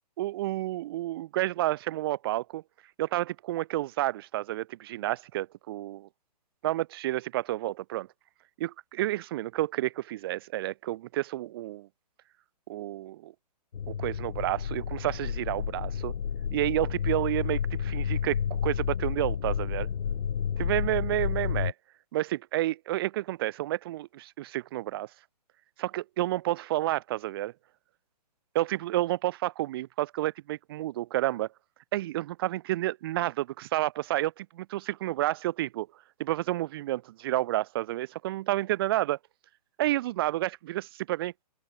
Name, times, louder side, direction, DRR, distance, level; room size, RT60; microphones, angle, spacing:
voice 1, 0.2-2.6 3.0-6.1 6.6-8.1 8.6-8.7 9.0-11.9 12.7-13.3 13.9-16.1 16.5-19.9 20.6-21.7 22.1-25.1 25.8-27.5 28.5-31.5 31.9-39.2 39.8-41.3, right 15 dB, 35° right, 3.2 m, -30 dB
sound 1, 13.7-21.7, left 7 dB, 90° left, 1.2 m, -31 dB
open air
hypercardioid pair, 165°, 21 cm